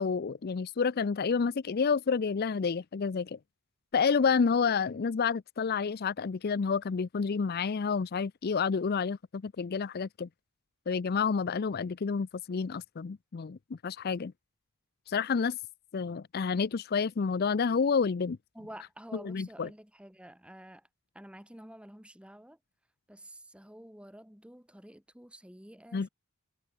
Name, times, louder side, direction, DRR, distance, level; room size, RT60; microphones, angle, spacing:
voice 1, 0.0-3.4 3.9-10.3 10.9-14.3 15.1-15.6 15.9-18.4 19.2-19.7 25.9-26.1, left 5 dB, 45° left, 0.4 m, -29 dB
voice 2, 18.5-20.9 21.1-22.6 23.1-26.1, right 1 dB, 5° right, 2.0 m, -49 dB
head